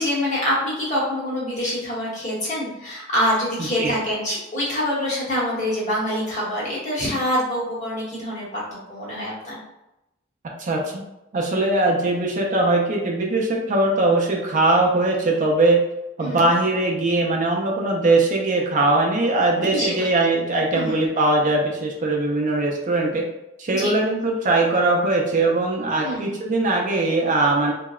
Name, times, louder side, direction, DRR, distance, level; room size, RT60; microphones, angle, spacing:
voice 1, 0.0-8.6 8.9-9.6 16.2-16.5 19.7-20.1 20.7-21.0 23.7-23.9 26.0-26.4, equal, 40° left, -6 dB, 1.0 m, -25 dB
voice 2, 10.6-11.0 11.3-15.8 16.2-23.2 23.6-27.7, right 2 dB, 40° right, 0 dB, 0.4 m, -20 dB
2.8 x 2.0 x 2.3 m, 0.91 s
head